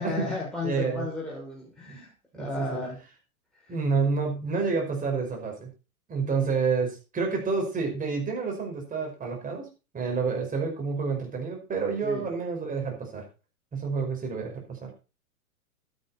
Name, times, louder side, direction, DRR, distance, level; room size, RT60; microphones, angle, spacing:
voice 1, 0.0-2.1 2.4-3.0 3.7-3.8 12.0-12.3, left 3 dB, ahead, -5 dB, 6.3 m, -33 dB
voice 2, 0.6-1.1 1.9-2.0 2.3-2.8 3.7-5.7 6.1-9.7 9.9-13.2 13.7-14.9, right 5 dB, 20° right, 1 dB, 5.5 m, -29 dB
12.0 x 10.5 x 4.3 m, 0.32 s
hypercardioid pair, 120°, 44 cm